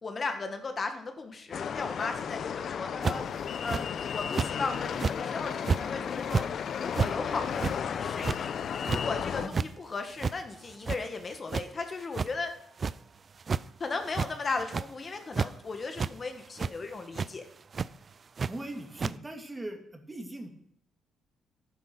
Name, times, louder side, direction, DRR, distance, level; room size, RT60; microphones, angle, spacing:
voice 1, 0.0-3.2 3.6-6.4 6.7-8.5 8.9-12.5 13.8-17.5, left 4 dB, 35° left, 6 dB, 1.5 m, -36 dB
sound 1, 1.5-9.5, left 7 dB, 60° left, 0.7 m, -34 dB
sound 2, 3.0-3.3 3.7-3.8 4.3-4.5 4.9-5.2 5.6-5.8 6.2-6.5 6.9-7.1 7.5-7.8 8.2-8.4 8.8-9.0 9.4-9.7 10.2-10.3 10.7-11.2 11.5-11.6 12.1-12.3 12.8-12.9 13.4-13.6 14.1-14.3 14.6-14.9 15.3-15.5 16.0-16.1 16.6-16.7 17.1-17.3 17.7-17.9 18.4-18.5 19.0-19.1, right 5 dB, 40° right, 0.4 m, -29 dB
voice 2, 18.4-20.5, right 1 dB, 20° right, 5 dB, 2.2 m, -40 dB
11.5 x 9.6 x 6.0 m, 0.70 s
cardioid pair, 90°, 0 cm